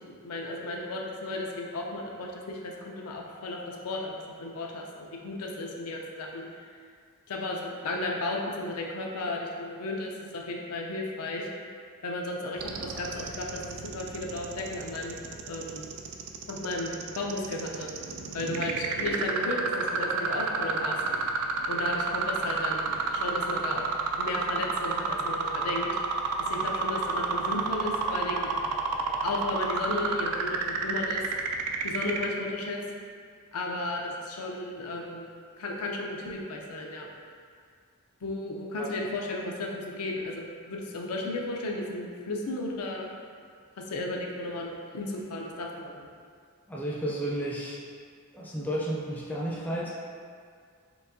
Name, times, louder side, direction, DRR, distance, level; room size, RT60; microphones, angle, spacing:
voice 1, 0.0-6.6 7.3-11.5 12.0-15.9 16.5-17.9 18.3-21.0 21.7-23.9 24.2-25.9 26.5-28.5 29.2-31.2 31.8-32.8 33.5-35.3 35.6-37.1 38.2-43.1 43.8-46.1, left 2 dB, 80° left, 0 dB, 0.5 m, -34 dB
sound 1, 12.6-32.2, right 5 dB, 75° right, 0.3 m, -30 dB
voice 2, 46.7-47.8 48.3-49.9, right 1 dB, 10° left, -5 dB, 0.4 m, -32 dB
4.5 x 3.5 x 2.6 m, 2.1 s
head